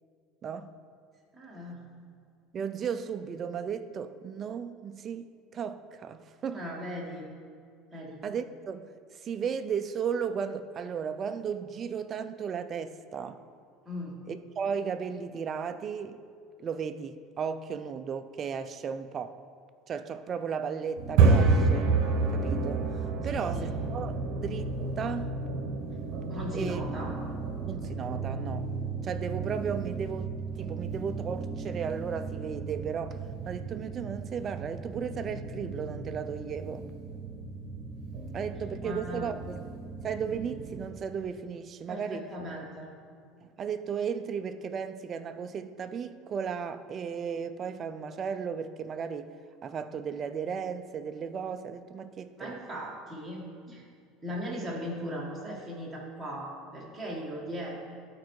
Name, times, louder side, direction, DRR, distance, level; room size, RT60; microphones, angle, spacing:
voice 1, 1.3-1.9 6.5-7.3 7.9-8.2 13.8-14.3 23.3-23.7 26.3-27.2 38.8-39.3 41.9-42.9 52.4-53.9 54.2-57.8, equal, 5° right, 1.3 m, -38 dB
voice 2, 2.5-6.6 8.2-13.4 14.3-16.2 16.6-19.4 19.9-21.9 22.3-25.4 26.5-26.8 27.7-28.7 29.0-30.3 30.6-36.9 38.3-39.6 40.0-42.2 43.4-49.3 49.6-52.6, right 7 dB, 25° right, 0.3 m, -35 dB
sound 1, 21.0-40.9, right 4 dB, 50° right, 0.9 m, -31 dB
12.0 x 4.6 x 4.6 m
cardioid pair, 175°, 0 cm